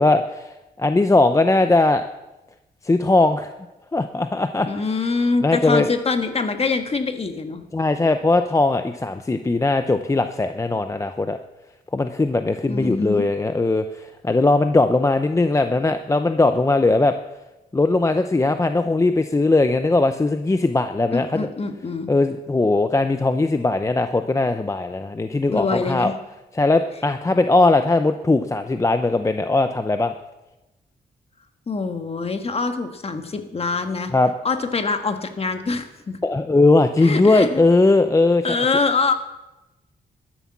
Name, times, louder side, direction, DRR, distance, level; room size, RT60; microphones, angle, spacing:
voice 1, 0.0-2.0 2.8-3.5 3.9-4.8 5.4-5.9 7.7-11.4 11.9-17.2 17.7-21.5 22.1-26.1 26.5-30.1 34.1-34.3 36.2-38.6, left 2 dB, 20° left, 8 dB, 0.6 m, -19 dB
voice 2, 4.7-7.6 12.7-13.2 21.1-22.1 25.5-26.1 31.7-34.1 34.4-36.2 37.0-37.7 38.4-39.1, left 4 dB, 35° left, 7 dB, 1.5 m, -24 dB
12.5 x 10.0 x 7.3 m, 1.0 s
cardioid pair, 105°, 17 cm